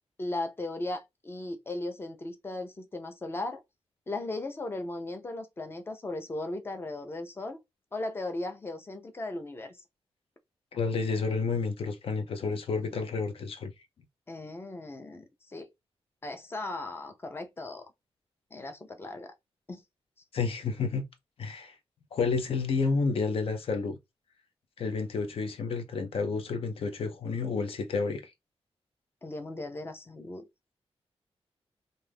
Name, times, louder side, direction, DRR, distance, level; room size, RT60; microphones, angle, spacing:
voice 1, 0.2-3.6 4.1-7.6 7.9-9.8 14.3-15.7 16.2-17.9 18.5-19.3 19.7-19.8 29.2-30.4, left 2 dB, 20° left, 0.5 m, -37 dB
voice 2, 10.7-13.7 20.3-21.0 21.4-21.7 22.1-24.0 24.8-28.2, left 4 dB, 65° left, 0.6 m, -30 dB
2.6 x 2.4 x 3.4 m
wide cardioid pair, 155°, 10 cm